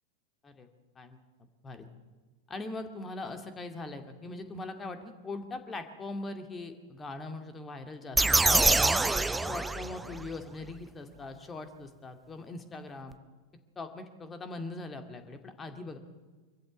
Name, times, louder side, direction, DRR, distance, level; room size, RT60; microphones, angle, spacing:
voice 1, 2.5-9.0 9.4-13.1 13.8-16.0, left 2 dB, 20° left, 7 dB, 2.3 m, -41 dB
sound 1, 8.1-10.3, right 2 dB, 10° right, 0.7 m, -25 dB
24.0 x 14.5 x 8.3 m, 1.3 s
figure-of-eight pair, 90°, 0 cm